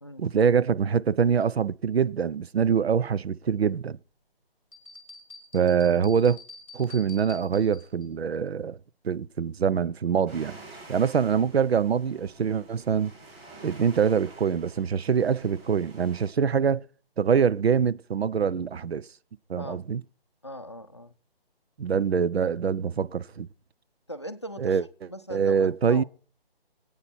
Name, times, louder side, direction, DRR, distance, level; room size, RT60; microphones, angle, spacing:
voice 1, 0.2-4.0 5.5-6.4 6.7-8.8 9.0-10.6 10.9-13.1 13.6-16.9 17.2-19.1 19.5-20.0 21.8-23.5 24.6-24.8 25.3-26.0, right 7 dB, 90° right, 0.6 m, -24 dB
sound 1, 4.7-8.1, left 3 dB, 10° left, 1.2 m, -47 dB
sound 2, 10.3-16.3, right 3 dB, 10° right, 2.4 m, -48 dB
voice 2, 20.4-21.1 24.1-24.8 25.1-26.0, equal, 30° left, 0.5 m, -39 dB
25.5 x 8.8 x 4.3 m
hypercardioid pair, 175°, 30 cm